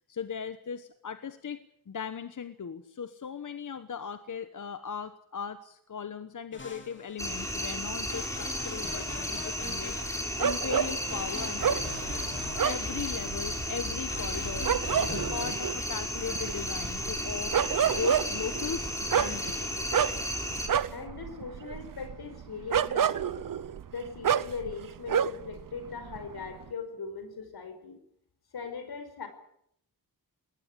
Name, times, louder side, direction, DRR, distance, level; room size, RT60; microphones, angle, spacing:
voice 1, 0.1-1.6 1.9-10.0 10.4-12.2 12.6-17.5 17.8-19.9, left 7 dB, 55° left, 10 dB, 1.2 m, -38 dB
sound 1, 6.5-7.4 8.1-10.6 11.1-15.5, left 3 dB, 30° left, 3.0 m, -42 dB
sound 2, 7.2-20.7, left 1 dB, 10° left, 3.8 m, -34 dB
scarier Denver dogs, 10.4-25.6 25.9-26.6, right 8 dB, 60° right, 0.9 m, -30 dB
voice 2, 20.9-23.5 23.9-28.0 28.5-29.3, left 5 dB, 80° left, 9 dB, 5.1 m, -40 dB
20.5 x 18.5 x 9.9 m, 0.72 s
wide cardioid pair, 155°, 37 cm